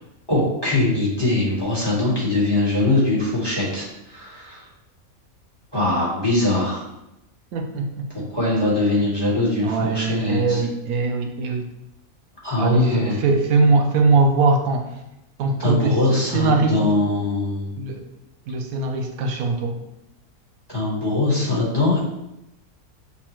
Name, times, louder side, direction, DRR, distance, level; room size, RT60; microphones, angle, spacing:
voice 1, 0.3-4.6 5.7-6.8 8.3-10.6 12.4-13.2 15.6-17.7 20.7-22.0, left 2 dB, 20° left, -8 dB, 1.3 m, -22 dB
voice 2, 7.5-8.1 9.6-11.7 12.6-14.9 15.4-16.0 16.3-16.8 17.8-18.0 18.5-19.8, right 3 dB, 90° right, 4 dB, 1.1 m, -21 dB
6.8 x 2.3 x 3.0 m, 0.85 s
omnidirectional pair, 1.5 m